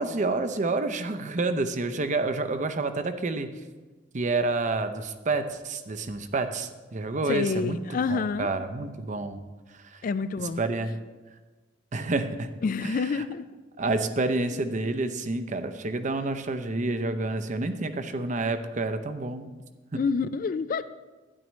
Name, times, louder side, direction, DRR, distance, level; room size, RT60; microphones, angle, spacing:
voice 1, 0.0-3.5 4.1-9.4 9.7-10.0 10.4-10.9 11.9-12.5 12.8-13.2 13.8-19.5 19.9-20.0, right 3 dB, 40° right, 9 dB, 0.6 m, -29 dB
voice 2, 7.3-8.5 10.0-10.6 12.6-13.5 14.4-14.5 19.9-20.9, left 4 dB, 45° left, 13 dB, 0.3 m, -28 dB
12.5 x 10.0 x 3.1 m, 1.2 s
head